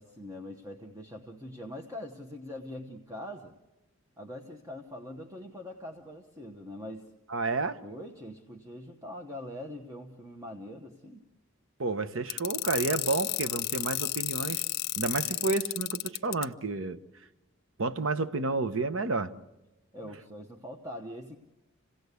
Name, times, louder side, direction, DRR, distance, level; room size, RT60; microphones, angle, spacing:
voice 1, 0.0-3.5 4.2-7.1 7.6-11.3 19.9-21.4, left 1 dB, 15° right, 2 dB, 1.0 m, -43 dB
voice 2, 7.3-7.8 11.8-14.6 15.0-17.0 17.8-19.3, right 3 dB, 70° right, 13 dB, 0.9 m, -30 dB
sound 1, 12.3-16.4, left 15 dB, 50° left, 0.8 m, -31 dB
27.0 x 17.0 x 8.2 m, 1.0 s
head